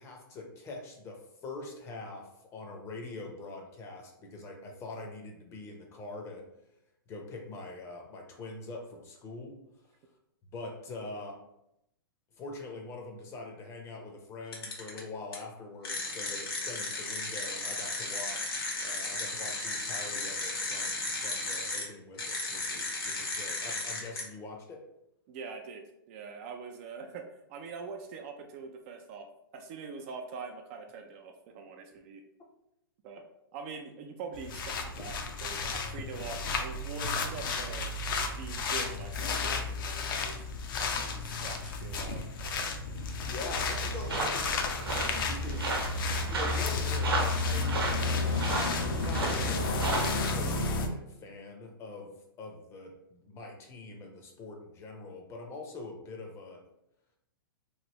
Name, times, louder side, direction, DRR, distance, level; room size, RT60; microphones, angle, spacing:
voice 1, 0.0-6.5 7.1-9.6 10.5-11.4 12.3-24.8 42.9-47.9 48.3-56.6, left 2 dB, 20° left, 1 dB, 0.6 m, -44 dB
sound 1, 14.5-15.0 15.3-15.4 15.8-21.8 22.2-24.2, left 2 dB, 80° left, 1.2 m, -35 dB
voice 2, 25.3-29.3 29.5-32.2 33.0-33.2 33.5-37.9 38.2-40.4 40.8-42.2, right 5 dB, 35° right, 4 dB, 0.3 m, -43 dB
sound 2, 34.3-50.9, left 3 dB, 65° left, 0.6 m, -32 dB
sound 3, 43.8-50.3, right 3 dB, 80° right, 0.9 m, -34 dB
3.1 x 2.6 x 2.9 m, 0.81 s
hypercardioid pair, 140°, 12 cm